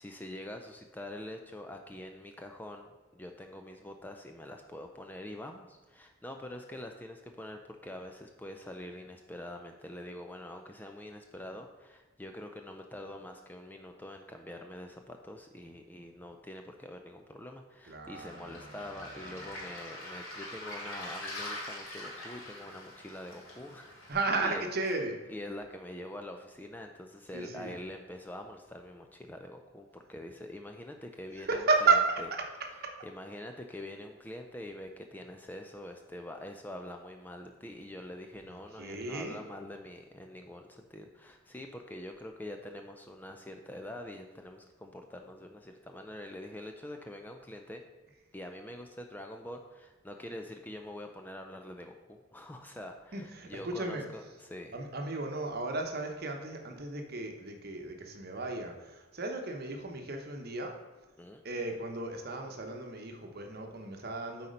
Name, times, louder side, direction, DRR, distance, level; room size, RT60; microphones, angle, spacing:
voice 1, 0.0-24.2 24.4-25.0 25.3-32.0 33.0-47.8 48.3-54.7 61.2-61.4, left 1 dB, 10° left, 4 dB, 0.3 m, -45 dB
voice 2, 17.8-19.5 24.1-25.2 27.3-27.8 31.4-32.2 32.8-32.9 38.8-39.4 53.1-54.0 54.7-60.7 61.4-64.5, right 3 dB, 50° right, 3 dB, 0.9 m, -33 dB
Waves surf, 18.1-24.1, left 1 dB, 85° left, 2.3 m, -43 dB
8.2 x 4.3 x 5.1 m, 1.2 s
head